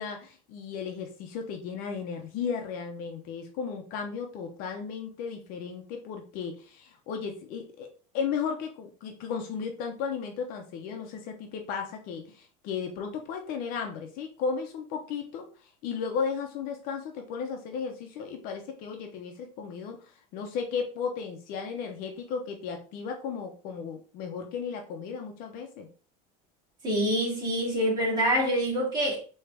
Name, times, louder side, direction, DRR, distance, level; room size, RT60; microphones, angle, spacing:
voice 1, 0.0-7.9 8.1-15.5 15.8-25.9, left 6 dB, 50° left, 0.9 m, -35 dB
voice 2, 26.8-29.2, equal, 25° right, 2.4 m, -26 dB
4.5 x 3.2 x 3.5 m
cardioid pair, 155°, 18 cm